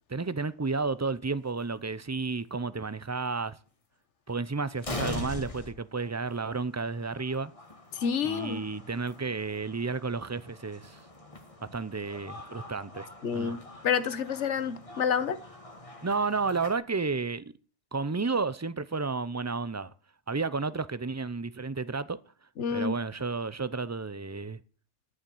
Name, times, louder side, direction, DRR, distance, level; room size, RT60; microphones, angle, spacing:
voice 1, 0.1-3.6 4.3-7.5 8.2-11.0 11.7-13.6 16.0-17.4 17.9-19.9 20.3-22.2 22.7-24.6, right 4 dB, 25° right, 0.4 m, -32 dB
sound 1, 1.5-1.7 2.6-2.7 3.0-3.1 4.3-4.4 4.8-16.7, left 2 dB, 30° left, 1.8 m, -43 dB
voice 2, 7.9-8.6 13.2-15.4 22.6-22.9, left 7 dB, 85° left, 1.3 m, -29 dB
11.0 x 7.0 x 7.8 m
omnidirectional pair, 1.2 m